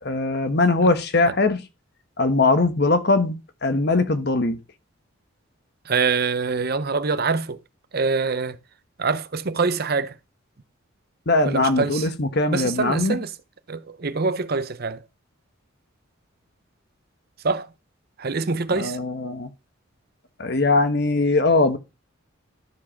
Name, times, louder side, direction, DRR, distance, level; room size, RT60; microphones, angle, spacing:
voice 1, 0.0-1.6 2.2-3.3 3.6-4.6 11.3-13.2 18.8-19.5 20.4-21.8, left 3 dB, 55° left, 1.3 m, -21 dB
voice 2, 5.8-7.6 7.9-8.6 9.0-10.2 11.4-12.1 12.5-13.3 13.7-15.0 17.4-17.7 18.2-19.0, right 4 dB, 50° right, 0.7 m, -24 dB
13.0 x 4.8 x 5.8 m
head